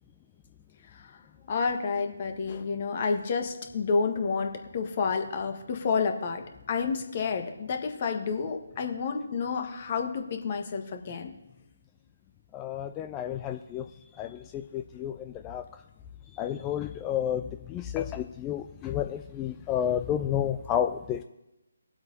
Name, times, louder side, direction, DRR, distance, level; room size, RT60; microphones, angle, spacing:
voice 1, 0.9-1.2 1.5-11.3, left 5 dB, 35° left, 5 dB, 1.4 m, -30 dB
voice 2, 12.5-13.8 14.2-15.6 16.3-21.2, left 10 dB, 15° left, 7 dB, 0.4 m, -31 dB
20.5 x 7.8 x 2.8 m, 0.93 s
figure-of-eight pair, 145°, 0 cm